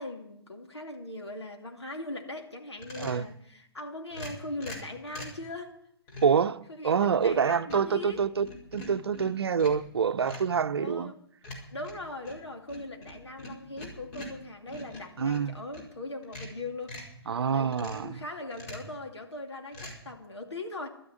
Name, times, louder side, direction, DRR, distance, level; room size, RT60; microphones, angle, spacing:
voice 1, 0.0-5.8 6.7-8.2 10.8-11.2 11.5-20.9, left 2 dB, 85° left, 2.7 m, -40 dB
sound 1, 2.8-3.3 4.1-5.4 6.1-6.4 6.9-7.4 7.7-9.9 10.2-10.6 11.4-15.9 16.2-17.2 17.7-18.1 18.5-19.0 19.7-19.9, left 1 dB, 35° left, 4.7 m, -44 dB
voice 2, 6.2-8.5 8.7-11.1 15.2-15.6 17.3-18.1, right 6 dB, 70° right, 0.7 m, -26 dB
12.5 x 9.5 x 9.2 m
figure-of-eight pair, 125°, 14 cm